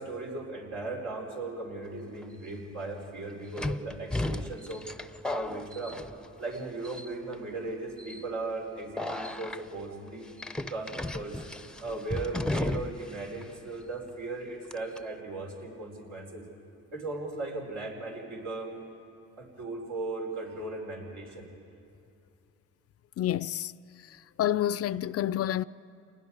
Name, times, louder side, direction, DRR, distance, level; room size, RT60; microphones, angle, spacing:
voice 1, 0.0-4.9 5.3-6.0 6.4-10.3 10.7-11.4 11.8-16.4 16.9-18.9 19.4-21.5, right 2 dB, 85° right, 4.8 m, -37 dB
sound 1, 2.2-2.3 3.6-6.6 6.8-7.4 8.0-8.2 9.0-9.6 10.4-13.1 13.4-13.5 14.7-15.0, left 2 dB, 5° left, 0.6 m, -34 dB
voice 2, 23.2-23.7 24.4-25.6, left 12 dB, 50° left, 0.4 m, -28 dB
29.0 x 20.0 x 4.8 m
cardioid pair, 90°, 30 cm